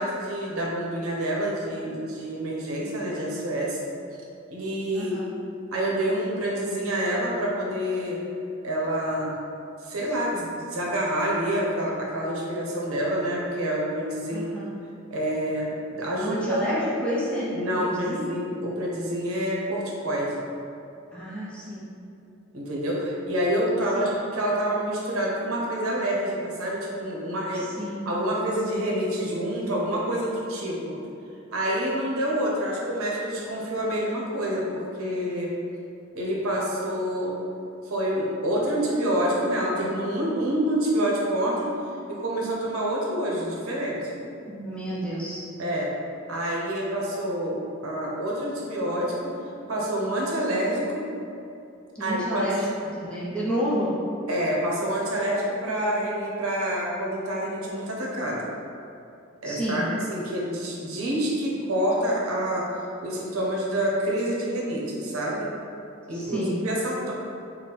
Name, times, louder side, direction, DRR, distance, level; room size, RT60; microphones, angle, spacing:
voice 1, 0.0-3.8 4.5-5.2 5.7-8.2 8.6-9.3 9.8-14.5 15.1-16.6 17.5-20.4 22.5-27.7 28.1-31.0 31.5-35.5 36.1-37.4 37.8-41.7 42.1-44.1 45.6-45.9 46.3-49.3 49.7-51.1 52.0-52.6 54.3-58.5 59.4-62.7 63.0-65.5 66.1-67.1, right 1 dB, 85° right, -3 dB, 0.8 m, -27 dB
voice 2, 4.9-5.3 14.3-14.7 16.2-18.2 21.1-21.8 23.9-24.1 27.5-28.0 44.5-45.4 51.9-52.7 53.0-53.9 59.4-59.8 66.1-66.6, equal, 5° left, -9 dB, 0.6 m, -30 dB
4.0 x 2.2 x 4.1 m, 2.7 s
head